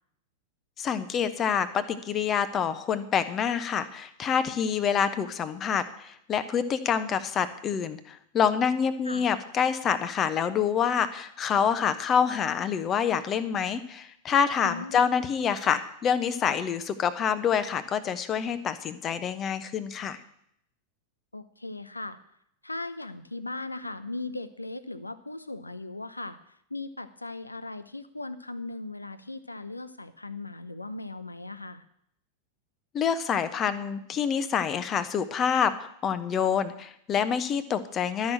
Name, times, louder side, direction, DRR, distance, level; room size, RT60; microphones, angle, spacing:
voice 1, 0.8-20.2 32.9-38.3, left 7 dB, 30° left, 12 dB, 1.0 m, -27 dB
voice 2, 14.6-15.0 21.3-22.2 22.6-31.8, left 2 dB, 85° left, 13 dB, 0.7 m, -38 dB
12.5 x 6.3 x 8.7 m, 0.73 s
figure-of-eight pair, 90°, 0 cm